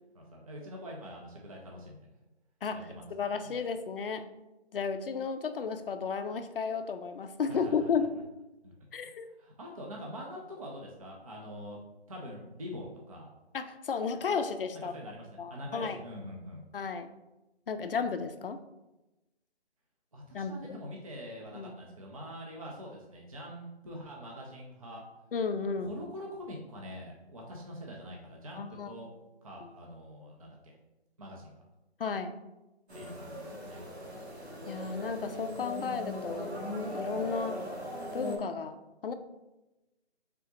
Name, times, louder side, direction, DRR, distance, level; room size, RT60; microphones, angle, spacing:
voice 1, 0.1-2.1 2.7-3.1 3.4-3.7 7.5-8.1 8.6-8.7 9.0-11.8 12.1-13.3 14.7-16.6 20.1-25.0 25.8-29.1 29.4-30.7 31.2-31.5 32.9-33.8, equal, 35° right, -2 dB, 0.5 m, -44 dB
voice 2, 3.1-4.3 4.7-8.1 8.9-9.3 13.5-14.9 15.4-16.0 16.7-17.1 17.7-18.6 20.3-20.8 21.5-21.7 25.3-26.0 28.5-28.9 32.0-32.4 34.7-36.5 36.9-37.6 38.1-38.8 39.0-39.1, left 5 dB, 55° left, 9 dB, 0.4 m, -33 dB
sound 1, 32.9-38.4, equal, 70° right, 1.1 m, -39 dB
3.7 x 3.5 x 2.9 m, 1.0 s
figure-of-eight pair, 165°, 33 cm